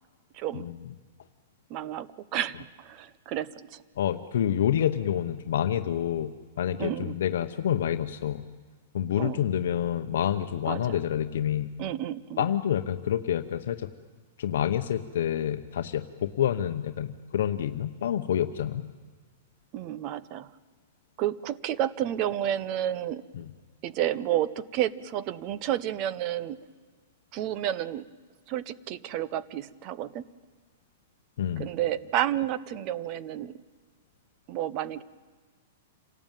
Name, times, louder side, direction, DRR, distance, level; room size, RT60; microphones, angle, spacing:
voice 1, 0.3-0.7 1.7-3.8 6.8-7.2 9.2-9.4 10.7-11.0 11.8-12.5 19.7-20.5 21.2-23.2 23.8-26.6 27.3-28.1 28.5-30.2 31.6-33.5 34.5-35.0, right 12 dB, 30° right, 17 dB, 0.7 m, -31 dB
voice 2, 4.0-8.4 8.9-11.7 12.4-13.9 14.4-18.9 23.4-23.5 31.4-31.7, left 10 dB, 65° left, 7 dB, 1.0 m, -28 dB
27.5 x 18.0 x 9.1 m, 1.5 s
supercardioid pair, 170°, 0 cm